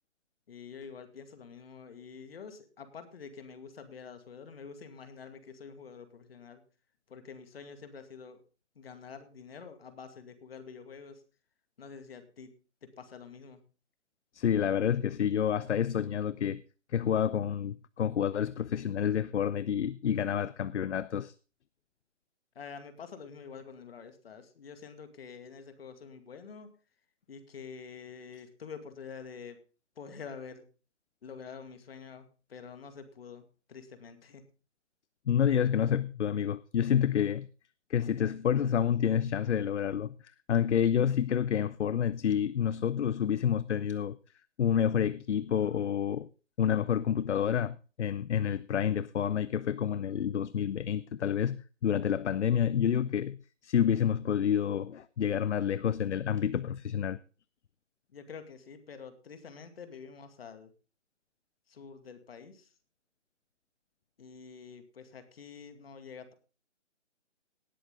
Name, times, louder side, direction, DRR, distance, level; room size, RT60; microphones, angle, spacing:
voice 1, 0.5-6.6 7.1-8.4 8.8-11.2 11.8-12.5 12.8-13.6 22.6-26.7 27.3-29.6 30.0-30.6 31.2-34.4 58.1-60.7 61.7-62.7 64.2-66.3, left 6 dB, 55° left, 2.2 m, -47 dB
voice 2, 14.3-16.6 16.9-21.3 35.3-37.5 37.9-40.1 40.5-44.2 44.6-46.3 46.6-53.4 53.6-57.2, left 9 dB, 70° left, 0.6 m, -29 dB
18.5 x 7.8 x 3.6 m
hypercardioid pair, 150°, 36 cm